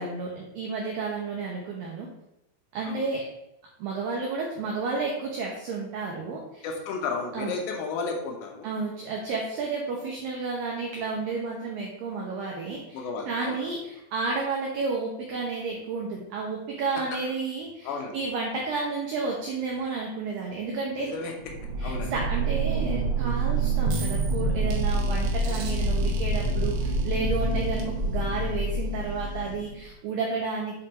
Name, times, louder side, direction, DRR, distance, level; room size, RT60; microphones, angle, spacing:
voice 1, 0.0-2.1 2.7-3.3 3.8-6.7 7.3-7.5 8.6-21.1 21.8-30.8, right 4 dB, 90° right, -1 dB, 2.0 m, -31 dB
voice 2, 6.6-8.7 12.9-13.6 17.8-18.1 21.0-21.3 21.8-22.1, left 4 dB, 75° left, 1 dB, 3.0 m, -33 dB
sound 1, 21.4-29.9, right 2 dB, 70° right, 2.4 m, -27 dB
8.0 x 3.8 x 4.3 m, 0.86 s
omnidirectional pair, 5.4 m